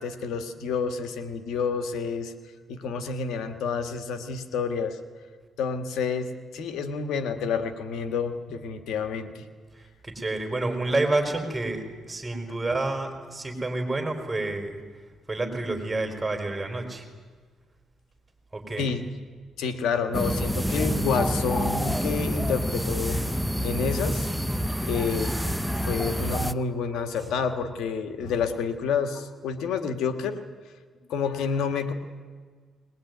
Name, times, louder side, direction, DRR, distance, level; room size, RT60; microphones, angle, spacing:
voice 1, 0.0-2.3 2.7-5.0 5.6-9.5 18.8-19.0 19.6-23.2 23.6-24.3 24.9-25.4 25.7-30.4 31.1-31.9, left 5 dB, 85° left, 8 dB, 1.7 m, -29 dB
voice 2, 9.7-14.7 15.3-17.0 18.5-18.9 20.7-21.0, right 2 dB, 20° right, 5 dB, 4.5 m, -29 dB
sound 1, 20.1-26.5, equal, ahead, 0.8 m, -27 dB
21.0 x 20.0 x 9.4 m, 1.5 s
cardioid pair, 90°, 0 cm